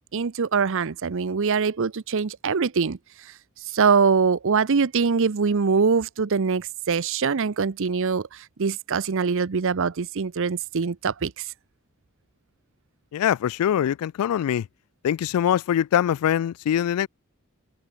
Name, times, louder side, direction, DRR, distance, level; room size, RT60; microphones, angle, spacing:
voice 1, 0.1-3.0 3.7-11.5, right 5 dB, 65° right, 0.7 m, -23 dB
voice 2, 13.1-14.7 15.0-17.1, left 10 dB, 85° left, 0.3 m, -23 dB
head